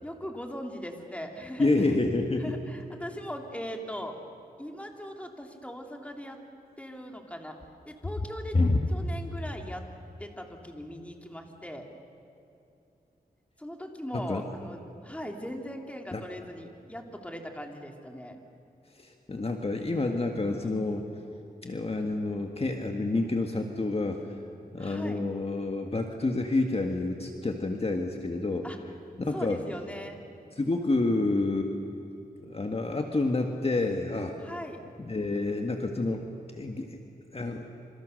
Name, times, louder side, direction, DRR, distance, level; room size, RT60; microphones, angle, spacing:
voice 1, 0.0-1.7 2.4-4.2 4.6-6.4 6.8-7.6 7.8-8.6 8.9-9.8 10.2-11.8 13.6-18.4 24.8-25.2 28.6-28.8 29.3-30.2 34.4-34.8, equal, 10° left, 3 dB, 3.0 m, -39 dB
voice 2, 1.6-2.5 8.5-8.8 14.1-14.4 16.1-16.2 18.9-21.1 21.6-24.2 24.7-28.7 29.2-29.6 30.6-31.7 32.4-34.4 35.0-36.3 36.5-37.0 37.3-37.6, left 2 dB, 40° left, 3 dB, 1.8 m, -28 dB
28.5 x 27.0 x 6.7 m, 2.7 s
wide cardioid pair, 80°, 16 cm